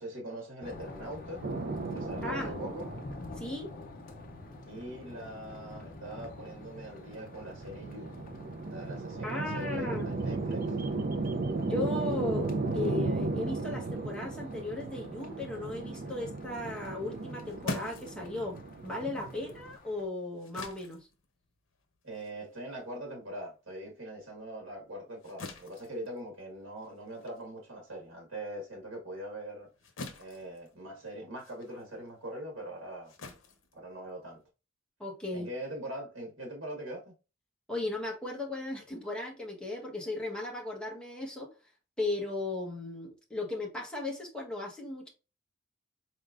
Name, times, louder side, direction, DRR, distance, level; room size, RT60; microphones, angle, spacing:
voice 1, 0.0-1.4 1.9-2.9 4.6-8.1 8.7-10.7 22.0-29.7 30.2-33.1 33.7-34.4 35.3-37.1, right 1 dB, 75° right, 1.7 m, -42 dB
sound 1, 0.6-20.1, left 3 dB, 45° left, 0.6 m, -49 dB
sound 2, 1.4-19.8, right 3 dB, 45° right, 0.4 m, -36 dB
voice 2, 2.2-2.5 3.4-3.7 9.2-10.0 11.6-21.1 35.0-35.5 37.7-41.5 42.0-45.1, left 2 dB, 5° left, 1.1 m, -36 dB
sound 3, 17.1-23.9 24.3-34.5, left 2 dB, 80° left, 0.8 m, -46 dB
4.4 x 3.5 x 2.5 m
head